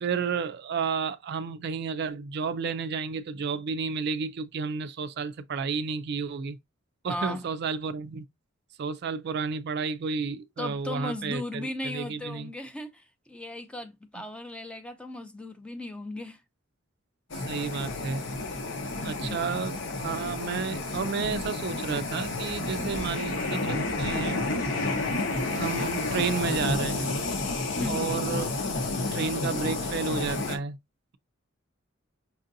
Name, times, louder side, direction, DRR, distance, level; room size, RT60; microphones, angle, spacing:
voice 1, 0.0-6.6 7.0-8.2 8.8-12.5 17.5-18.2 19.0-24.4 25.1-25.2 25.5-27.1 27.9-28.6 29.1-30.8, right 5 dB, 55° right, 0.4 m, -31 dB
voice 2, 7.1-7.5 10.6-16.4 18.9-19.4 22.8-22.9 27.8-28.0, left 1 dB, 5° left, 0.5 m, -37 dB
sound 1, 17.3-30.6, left 2 dB, 65° left, 0.9 m, -30 dB
sound 2, 21.3-21.5 21.8-21.9 22.7-23.4 23.9-24.3 25.7-26.9, right 1 dB, 85° left, 2.3 m, -45 dB
5.9 x 2.5 x 2.6 m
head